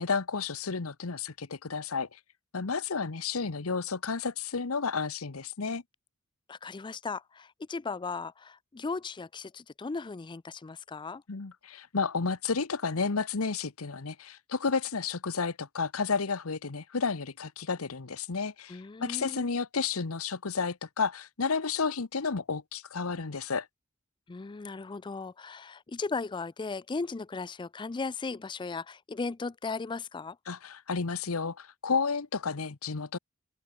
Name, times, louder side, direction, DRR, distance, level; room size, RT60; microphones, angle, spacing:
voice 1, 0.0-2.1 2.5-5.8 11.3-23.7 30.5-33.2, left 5 dB, 85° left, 1.0 m, -31 dB
voice 2, 6.5-11.2 18.7-19.5 24.3-30.4, left 4 dB, 20° left, 0.4 m, -37 dB
open air
head